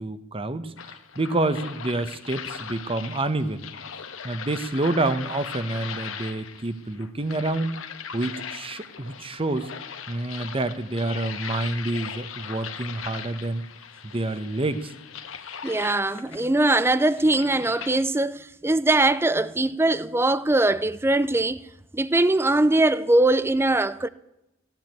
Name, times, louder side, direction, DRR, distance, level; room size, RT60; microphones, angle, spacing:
voice 1, 0.0-3.7 4.2-7.7 8.1-9.7 10.1-13.6 14.0-14.9, right 2 dB, 30° right, 0.9 m, -28 dB
sound 1, 0.8-18.0, left 7 dB, 85° left, 1.4 m, -39 dB
voice 2, 15.6-21.7 21.9-24.1, right 2 dB, 10° right, 0.5 m, -21 dB
15.5 x 9.1 x 9.1 m
head